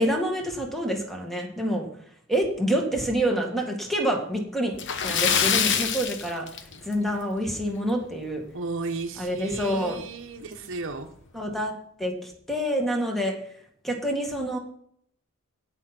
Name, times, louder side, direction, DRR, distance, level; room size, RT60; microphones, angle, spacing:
voice 1, 0.0-1.9 2.3-4.7 5.0-6.5 6.8-8.4 9.2-10.0 11.3-11.7 12.0-13.4 13.8-14.6, equal, ahead, 1 dB, 2.0 m, -27 dB
Splash splatter, 4.7-7.1 7.4-7.6 8.0-8.1 9.6-9.7 10.0-10.1 10.7-11.0, left 7 dB, 60° left, 1.0 m, -25 dB
voice 2, 8.5-11.1, right 3 dB, 60° right, 4 dB, 1.1 m, -34 dB
17.0 x 5.9 x 4.4 m, 0.65 s
head